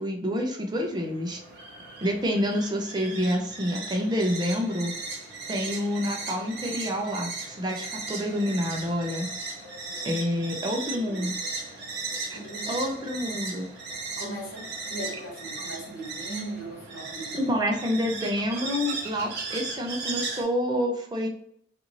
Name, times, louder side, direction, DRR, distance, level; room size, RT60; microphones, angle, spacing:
voice 1, 0.0-1.4 2.0-4.9 5.5-9.3 10.0-11.4 12.3-12.4 12.7-13.7 17.5-21.3, equal, 20° right, 2 dB, 0.5 m, -28 dB
sound 1, 0.7-20.4, right 3 dB, 55° right, 0.7 m, -37 dB
voice 2, 9.9-10.2 10.9-11.4 12.3-12.8 14.2-17.5, right 1 dB, 85° left, -1 dB, 1.1 m, -39 dB
2.6 x 2.5 x 2.9 m, 0.70 s
head